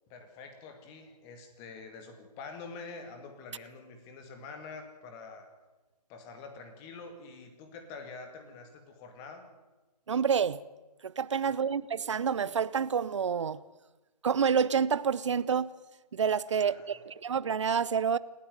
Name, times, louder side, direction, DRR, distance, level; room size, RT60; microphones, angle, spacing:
voice 1, 0.1-5.5 6.1-9.4 11.3-11.6 16.5-17.1, left 4 dB, 15° left, 2.3 m, -46 dB
voice 2, 10.1-10.6 11.0-13.6 14.2-15.7 16.1-18.2, right 7 dB, 45° right, 0.7 m, -28 dB
29.0 x 9.9 x 9.4 m
figure-of-eight pair, 145°, 21 cm